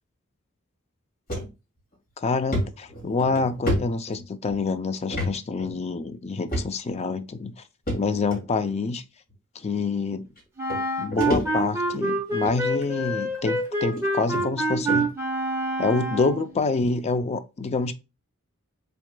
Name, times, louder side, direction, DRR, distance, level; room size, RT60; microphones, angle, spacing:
sound 1, 1.3-1.5 1.9-2.0 2.5-4.6 5.1-5.3 5.6-5.7 6.5-7.0 7.9-8.4 9.3-9.4 10.4-10.5 10.7-11.9 12.3-12.6 13.4-13.5 14.0-14.1 14.3-14.4 14.9-15.1, equal, 45° left, 2.3 m, -29 dB
voice 1, 2.2-7.5 7.9-9.0 9.6-10.3 11.0-15.1 15.8-17.9, left 4 dB, 30° left, 0.4 m, -27 dB
Wind instrument woodwind instrument, 10.6-16.5, right 2 dB, 15° right, 1.3 m, -27 dB
6.2 x 3.5 x 2.2 m
head